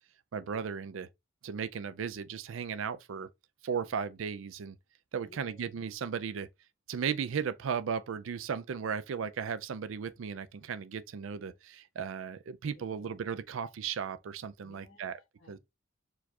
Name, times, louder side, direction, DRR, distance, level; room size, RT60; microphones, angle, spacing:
voice 1, 0.3-1.1 1.4-3.3 3.6-4.8 5.1-6.5 6.9-15.2 15.5-15.6, right 6 dB, 85° right, 0.4 m, -36 dB
voice 2, 5.2-5.9 12.7-13.3 14.6-15.6, left 2 dB, 75° left, 1.4 m, -59 dB
4.6 x 2.4 x 4.1 m
head